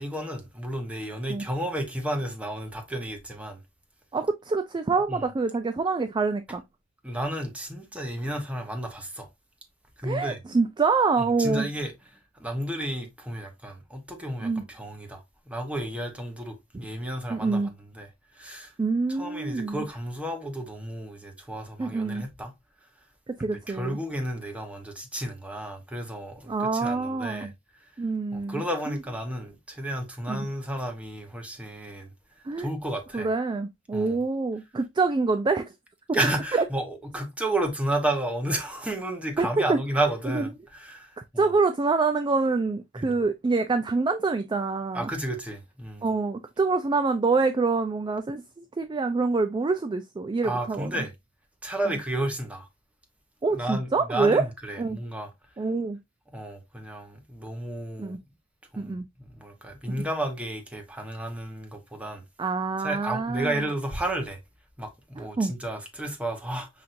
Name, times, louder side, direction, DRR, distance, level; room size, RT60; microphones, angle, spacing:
voice 1, 0.0-3.6 5.1-5.2 7.0-9.3 10.0-10.4 11.4-11.9 12.4-17.6 18.0-18.1 18.4-18.7 19.2-22.5 23.7-27.5 28.3-32.1 32.6-33.3 33.9-34.2 36.1-41.5 43.0-43.1 44.9-46.1 50.4-51.1 51.6-52.7 53.5-55.3 56.3-58.2 58.7-58.9 59.4-62.2 62.8-64.4 64.8-66.7, right 1 dB, 5° right, 0.9 m, -32 dB
voice 2, 4.1-6.6 10.0-11.7 14.4-14.6 17.3-17.7 18.8-19.9 21.8-22.2 23.3-24.0 26.5-27.5 28.0-29.0 30.3-30.5 32.5-32.7 33.1-35.7 36.5-36.7 39.4-39.8 40.3-40.5 41.4-45.1 46.0-51.1 53.4-54.4 54.8-55.0 55.6-56.0 58.0-58.2 58.8-59.0 59.9-60.0 62.4-63.6 65.2-65.5, right 4 dB, 25° right, 0.3 m, -26 dB
5.8 x 2.6 x 2.5 m
head